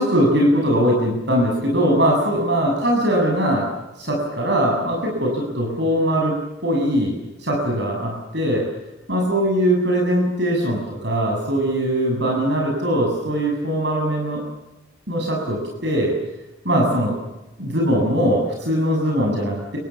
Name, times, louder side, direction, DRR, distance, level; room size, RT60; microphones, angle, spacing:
voice 1, 0.0-3.7 4.0-6.3 6.6-7.1 7.4-8.6 9.1-14.4 15.1-16.1 16.6-17.1 17.6-19.8, equal, 60° right, 0 dB, 7.4 m, -21 dB
28.5 x 24.5 x 7.2 m, 1.0 s
head